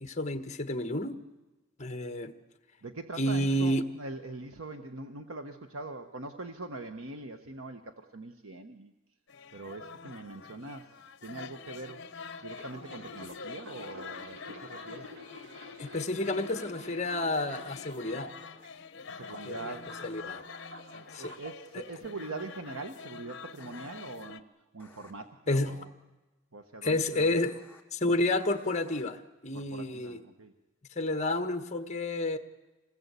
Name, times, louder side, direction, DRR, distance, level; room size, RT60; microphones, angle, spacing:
voice 1, 0.0-1.1 1.8-2.3 3.1-3.8 15.8-18.3 19.4-19.7 20.0-20.5 21.1-21.3 21.7-21.8 25.5-25.8 26.8-27.6 27.9-30.2 30.9-32.4, left 1 dB, 35° left, 9 dB, 1.4 m, -30 dB
voice 2, 2.8-8.9 9.5-10.9 11.2-12.0 12.4-15.1 19.1-19.9 20.9-24.4 24.7-25.9 26.5-27.3 29.5-30.5, right 3 dB, 85° right, 7 dB, 1.2 m, -42 dB
sound 1, 9.3-24.4, left 5 dB, 60° left, 1.0 m, -46 dB
sound 2, 12.2-18.7 19.1-21.6 22.2-22.4, left 1 dB, 70° right, 2.4 m, -49 dB
sound 3, 16.4-16.5 17.6-17.7 20.0-20.2 21.2-21.4 23.6-23.9 24.8-25.1 27.2-27.8 28.4-29.0, left 1 dB, 10° left, 3.1 m, -56 dB
26.5 x 19.0 x 8.3 m, 1.1 s
head